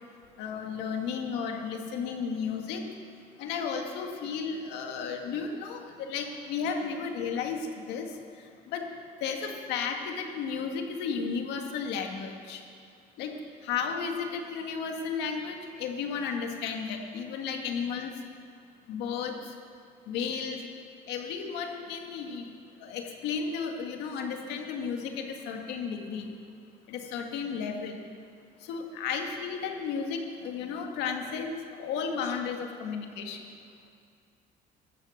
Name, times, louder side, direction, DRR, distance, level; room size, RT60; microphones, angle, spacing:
voice 1, 0.4-2.8 3.4-8.1 8.7-8.9 9.2-12.6 13.2-13.3 13.6-18.1 18.9-19.5 20.1-20.6 21.1-22.4 22.8-26.3 26.9-28.0 28.6-33.4, left 6 dB, 90° left, 3 dB, 2.0 m, -33 dB
16.5 x 13.0 x 6.6 m, 2.2 s
cardioid pair, 110°, 17 cm